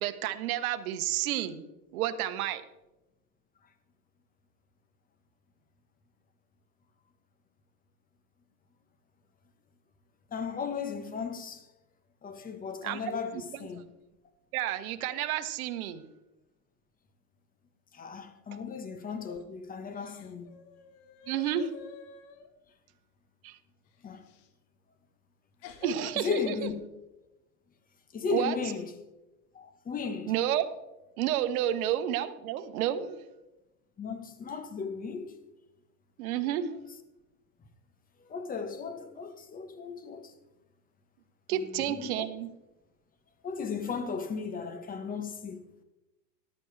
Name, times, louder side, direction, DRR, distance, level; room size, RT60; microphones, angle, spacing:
voice 1, 0.0-1.7 1.9-2.6 12.8-13.2 13.5-13.7 14.5-16.1 21.3-21.7 23.4-23.6 25.8-26.5 28.3-28.6 30.3-30.7 31.2-33.2 36.2-36.7 41.5-42.5, right 11 dB, 60° right, 1.2 m, -30 dB
voice 2, 10.3-11.6 12.2-13.8 17.9-20.5 24.0-24.2 26.1-26.7 28.1-28.9 29.5-30.3 34.0-35.4 38.3-40.3 41.5-42.2 43.4-45.6, left 5 dB, 20° left, 1.2 m, -35 dB
sound 1, 19.1-19.5 19.9-22.5 24.3-24.5 25.6-26.2, left 5 dB, 50° left, 1.5 m, -48 dB
14.0 x 11.0 x 3.3 m
hypercardioid pair, 120°, 48 cm